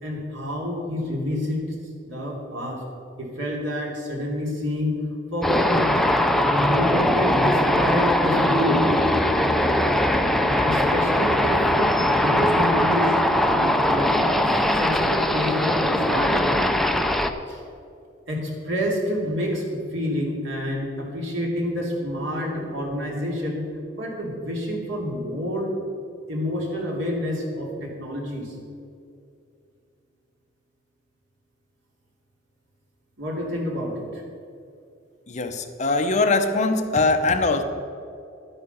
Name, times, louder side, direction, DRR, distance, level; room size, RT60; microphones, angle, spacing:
voice 1, 0.0-1.8 2.0-2.8 3.2-5.0 5.3-5.9 6.3-8.8 10.4-16.5 17.5-17.6 18.3-23.6 24.0-25.7 26.3-28.5 33.2-34.2, equal, 75° right, -1 dB, 2.9 m, -28 dB
sound 1, 5.4-17.3, left 1 dB, ahead, 0.5 m, -21 dB
voice 2, 35.3-37.6, left 3 dB, 40° left, 6 dB, 0.8 m, -22 dB
11.5 x 10.0 x 5.5 m, 2.5 s
head